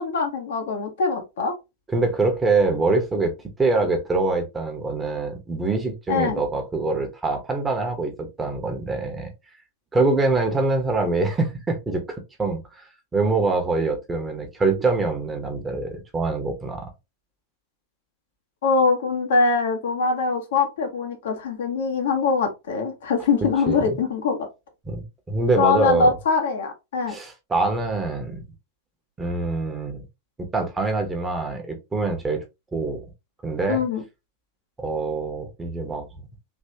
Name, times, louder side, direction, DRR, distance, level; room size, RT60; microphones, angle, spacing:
voice 1, 0.0-1.5 6.1-6.4 18.6-24.5 25.6-27.2 33.7-34.0, left 4 dB, 60° left, 1.1 m, -23 dB
voice 2, 1.9-3.3 3.6-9.3 9.9-12.9 13.1-16.9 23.7-24.0 24.8-26.1 27.1-28.5 29.2-30.0 30.4-32.4 32.7-33.0 33.4-33.8 34.8-36.1, right 3 dB, 15° right, 1.0 m, -24 dB
3.4 x 2.9 x 2.8 m
figure-of-eight pair, 90°, 0 cm